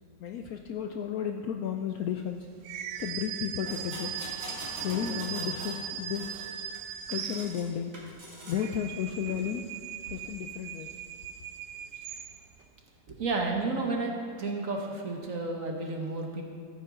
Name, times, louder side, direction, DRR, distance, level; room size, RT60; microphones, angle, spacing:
voice 1, 0.2-2.5 3.0-4.1 4.7-6.4 7.1-7.9 8.5-9.6 10.1-10.9, left 9 dB, 70° left, 5 dB, 0.9 m, -33 dB
sound 1, 2.6-7.9 8.4-12.6, right 9 dB, 80° right, 1.3 m, -39 dB
sound 2, 3.7-5.8 6.1-7.6 7.9-8.6 9.3-9.4, equal, 35° right, 2.2 m, -43 dB
voice 2, 13.1-16.4, right 3 dB, 50° right, 2 dB, 1.4 m, -32 dB
14.5 x 8.6 x 3.7 m, 2.4 s
omnidirectional pair, 1.9 m